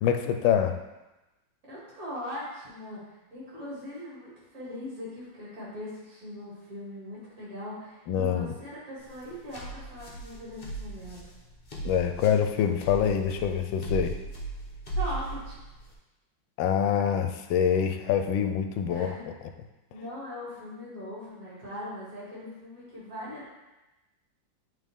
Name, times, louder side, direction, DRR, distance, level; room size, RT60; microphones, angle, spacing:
voice 1, 0.0-0.8 8.1-8.5 11.8-14.1 16.6-19.1, left 8 dB, 80° left, 6 dB, 1.3 m, -25 dB
voice 2, 1.6-11.2 14.9-15.6 18.8-19.3 19.9-23.5, left 1 dB, 45° right, -8 dB, 2.9 m, -40 dB
sound 1, 9.0-15.9, right 2 dB, 35° left, 1.0 m, -37 dB
8.3 x 3.8 x 3.5 m, 1.0 s
omnidirectional pair, 2.1 m